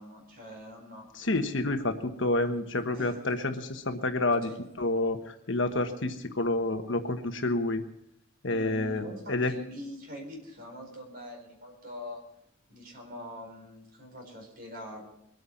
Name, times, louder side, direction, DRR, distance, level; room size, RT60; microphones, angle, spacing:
voice 1, 0.0-1.1 2.4-2.7 2.9-3.3 4.4-4.7 8.5-12.2 12.7-15.1, left 1 dB, 45° right, 2 dB, 4.5 m, -43 dB
voice 2, 1.1-4.5 4.8-7.8 8.4-9.5, left 2 dB, 65° left, 7 dB, 1.3 m, -29 dB
22.0 x 9.2 x 5.8 m, 0.78 s
head